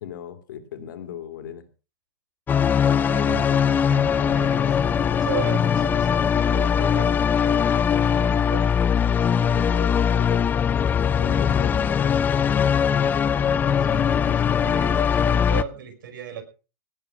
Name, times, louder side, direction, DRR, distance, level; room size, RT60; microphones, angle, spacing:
voice 1, 0.0-1.7 6.1-6.3 9.4-10.4 11.1-12.0, left 9 dB, 75° left, 8 dB, 2.7 m, -37 dB
sound 1, 2.5-15.6, left 7 dB, 15° left, 0.6 m, -21 dB
voice 2, 2.6-8.7 9.1-9.3 11.2-11.9 13.2-16.4, right 7 dB, 80° right, 7 dB, 5.1 m, -37 dB
18.5 x 7.5 x 5.9 m, 0.35 s
supercardioid pair, 145°, 11 cm